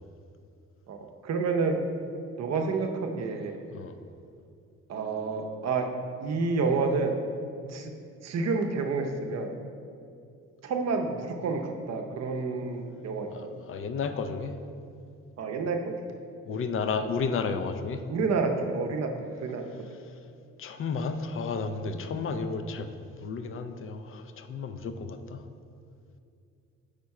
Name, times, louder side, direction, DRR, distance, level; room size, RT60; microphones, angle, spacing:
voice 1, 0.9-1.8 2.4-3.6 4.9-5.9 6.2-7.2 7.7-7.9 8.2-9.5 10.6-13.3 15.4-15.9 18.1-19.6 21.9-22.3, right 4 dB, 60° right, 4 dB, 0.7 m, -29 dB
voice 2, 13.3-14.5 16.5-18.0 20.6-22.9 23.2-25.4, left 5 dB, 45° left, 8 dB, 0.5 m, -32 dB
5.1 x 4.3 x 4.7 m, 2.4 s
cardioid pair, 90°, 30 cm